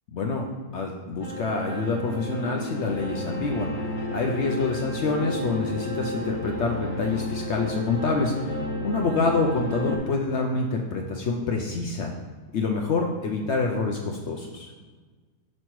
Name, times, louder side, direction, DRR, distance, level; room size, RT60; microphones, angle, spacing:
voice 1, 0.1-0.5 0.7-12.1 12.5-14.7, left 3 dB, 65° left, 1 dB, 0.7 m, -27 dB
sound 1, 1.2-10.0, equal, 35° left, 1.0 m, -32 dB
6.0 x 5.3 x 3.0 m, 1.4 s
omnidirectional pair, 1.6 m